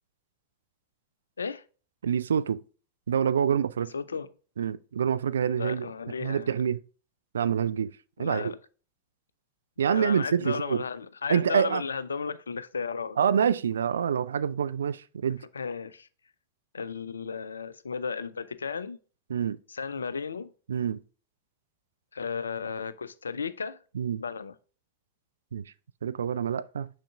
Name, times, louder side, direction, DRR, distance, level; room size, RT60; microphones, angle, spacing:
voice 1, 2.0-2.6 3.1-3.9 4.6-5.9 6.2-6.8 7.3-7.9 8.2-8.5 9.8-10.8 11.3-11.8 13.2-15.4 19.3-19.6 20.7-21.0 23.9-24.2 25.5-25.6 26.0-26.9, right 8 dB, 65° right, 0.3 m, -26 dB
voice 2, 3.9-4.3 5.5-6.5 8.2-8.6 9.9-13.2 15.5-16.1 16.7-19.0 19.7-20.5 22.1-23.8 24.2-24.5, left 5 dB, 75° left, 0.4 m, -34 dB
6.3 x 6.3 x 2.4 m
figure-of-eight pair, 90°, 0 cm